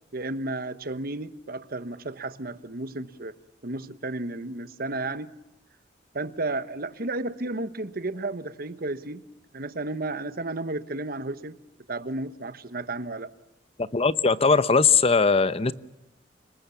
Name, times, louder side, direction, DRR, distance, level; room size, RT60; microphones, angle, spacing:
voice 1, 0.1-3.4 3.6-5.4 6.1-9.3 9.5-11.6 11.9-13.3, right 2 dB, 55° right, 1.3 m, -33 dB
voice 2, 13.9-15.7, left 4 dB, 35° left, 0.9 m, -20 dB
30.0 x 20.5 x 7.2 m
head